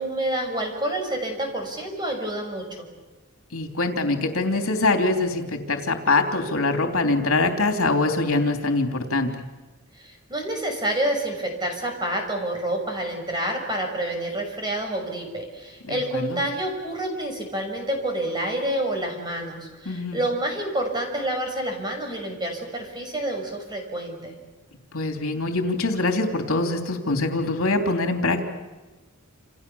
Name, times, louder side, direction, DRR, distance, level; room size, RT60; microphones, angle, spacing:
voice 1, 0.0-2.9 10.0-24.4, right 1 dB, 20° right, 3 dB, 6.2 m, -28 dB
voice 2, 3.5-9.3 15.9-16.4 19.8-20.2 24.9-28.4, left 2 dB, 75° left, 4 dB, 3.3 m, -23 dB
29.0 x 28.5 x 7.1 m, 1.2 s
head